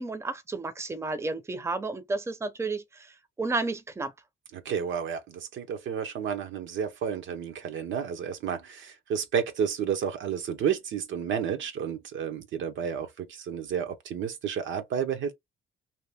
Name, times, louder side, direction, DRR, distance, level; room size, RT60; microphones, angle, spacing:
voice 1, 0.0-4.1, right 3 dB, 15° right, 0.6 m, -32 dB
voice 2, 4.5-15.3, right 7 dB, 75° right, 0.9 m, -31 dB
2.8 x 2.5 x 3.4 m
cardioid pair, 90°, 20 cm